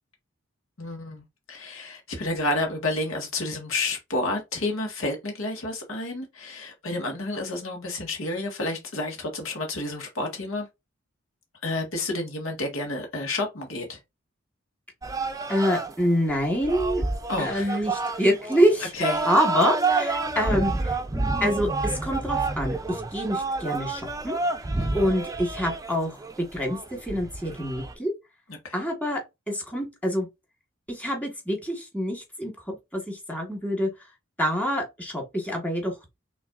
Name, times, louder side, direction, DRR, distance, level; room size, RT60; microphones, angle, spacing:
voice 1, 0.8-10.7 11.6-14.0 17.3-17.8 18.9-19.3 24.8-25.1 28.5-28.7, left 2 dB, 85° left, 1.7 m, -30 dB
sound 1, 15.0-27.9, right 3 dB, 15° right, 0.5 m, -29 dB
voice 2, 15.5-17.1 17.4-18.9 19.2-21.0 21.4-24.4 24.9-26.2 26.5-28.1 28.7-30.3 30.9-33.9 34.4-35.9, equal, 10° left, 1.6 m, -26 dB
5.9 x 3.2 x 2.5 m
head